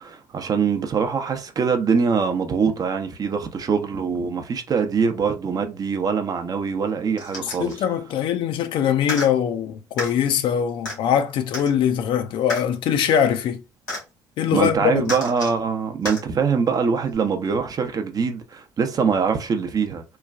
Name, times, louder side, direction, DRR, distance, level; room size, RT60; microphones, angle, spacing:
voice 1, 0.0-7.7 14.5-20.0, right 5 dB, 40° right, 0.6 m, -23 dB
sound 1, 7.2-7.8 9.0-9.3 10.0-10.1 10.8-11.0 11.5-11.7 12.5-12.6 13.9-14.0 15.0-15.6 16.0-16.2 17.1-17.2, left 2 dB, 85° left, 1.4 m, -30 dB
voice 2, 7.4-13.6 14.4-15.1, left 9 dB, 55° left, 0.4 m, -22 dB
3.1 x 2.2 x 2.3 m
hypercardioid pair, 50°, 10 cm